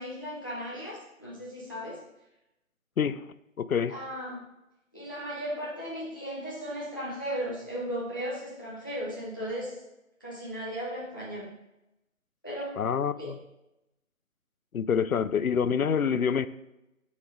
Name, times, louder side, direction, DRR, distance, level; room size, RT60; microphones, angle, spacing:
voice 1, 0.0-2.0 3.9-4.4 4.9-9.8 10.2-11.5 12.4-12.8 13.2-13.3, equal, 15° left, 0.6 m, -36 dB
voice 2, 3.6-4.0 12.8-13.4 14.7-16.5, left 7 dB, 85° left, 0.6 m, -26 dB
7.1 x 4.4 x 4.5 m
figure-of-eight pair, 150°, 41 cm